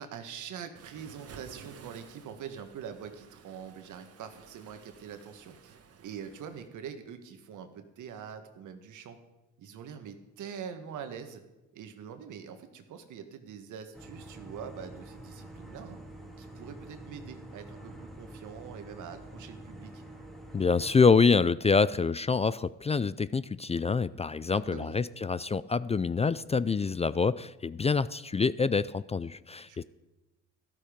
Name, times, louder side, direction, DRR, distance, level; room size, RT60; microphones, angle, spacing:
voice 1, 0.0-5.7 6.0-9.2 9.6-11.4 11.7-16.0 16.4-20.0 24.5-25.0 29.7-29.8, right 7 dB, 80° right, 7 dB, 1.7 m, -44 dB
Waves surf, 0.8-6.7, right 6 dB, 50° right, 1.4 m, -53 dB
sound 1, 13.9-21.1, right 1 dB, ahead, 2.7 m, -47 dB
voice 2, 20.5-29.8, left 5 dB, 20° left, 17 dB, 0.4 m, -26 dB
13.0 x 13.0 x 5.2 m, 1.0 s
cardioid pair, 90°, 30 cm